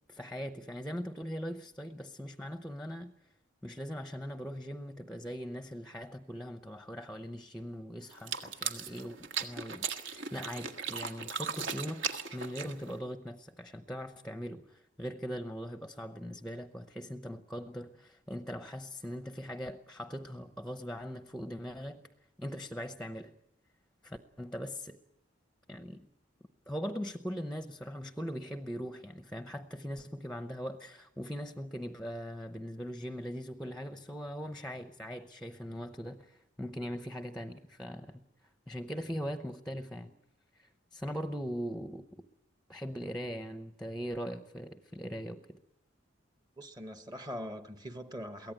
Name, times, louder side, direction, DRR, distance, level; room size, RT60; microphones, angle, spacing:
voice 1, 0.1-3.1 3.6-12.1 12.3-22.0 22.4-23.3 24.0-25.0 25.7-26.1 26.7-38.2 38.7-40.1 40.5-42.2 42.7-45.6, equal, 5° left, 0.8 m, -40 dB
sound 1, 8.1-13.0, right 6 dB, 70° right, 1.7 m, -37 dB
voice 2, 46.6-48.5, equal, 20° right, 1.0 m, -42 dB
23.5 x 17.0 x 9.0 m
head